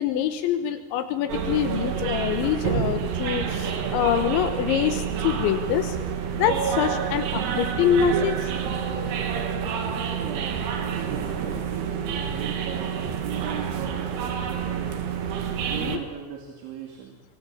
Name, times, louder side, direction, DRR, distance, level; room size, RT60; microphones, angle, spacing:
voice 1, 0.0-6.0 6.4-8.5 15.7-16.0, left 9 dB, 80° left, 7 dB, 3.4 m, -25 dB
sound 1, 1.3-16.0, right 7 dB, 65° right, 3.9 m, -28 dB
voice 2, 10.1-15.0 15.7-17.2, right 7 dB, 80° right, 2 dB, 4.8 m, -38 dB
25.0 x 19.0 x 8.7 m, 1.4 s
omnidirectional pair, 5.3 m